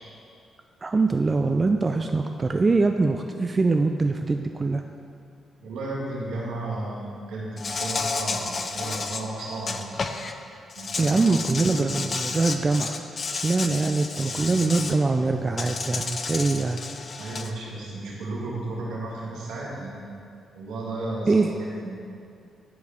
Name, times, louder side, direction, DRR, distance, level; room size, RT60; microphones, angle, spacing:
voice 1, 0.8-4.8 11.0-13.0 13.3-16.8 21.3-21.5, right 3 dB, 35° right, 5 dB, 0.3 m, -23 dB
voice 2, 5.6-10.0 10.7-11.2 11.6-12.1 17.2-20.1 20.5-22.0, right 2 dB, 80° right, -5 dB, 1.6 m, -34 dB
Insect, 7.6-10.3 10.7-15.0 15.6-17.5, left 4 dB, 50° left, 0.5 m, -32 dB
10.5 x 4.7 x 3.5 m, 2.4 s
supercardioid pair, 50°, 0 cm